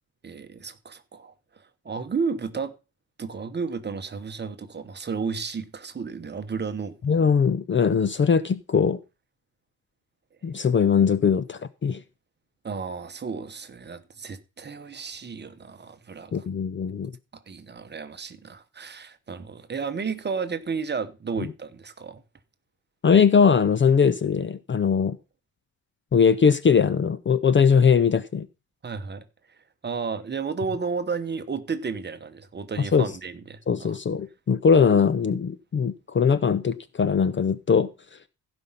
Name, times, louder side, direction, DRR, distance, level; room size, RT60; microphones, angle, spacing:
voice 1, 0.2-2.7 3.2-6.9 12.6-16.5 17.5-22.2 28.8-29.2 29.8-34.0, right 5 dB, 30° right, 1.0 m, -32 dB
voice 2, 7.0-9.0 10.4-12.0 16.3-17.1 23.0-25.2 26.1-28.5 32.9-33.1 33.7-37.9, left 6 dB, 30° left, 0.6 m, -20 dB
15.5 x 5.4 x 5.6 m
wide cardioid pair, 150°, 36 cm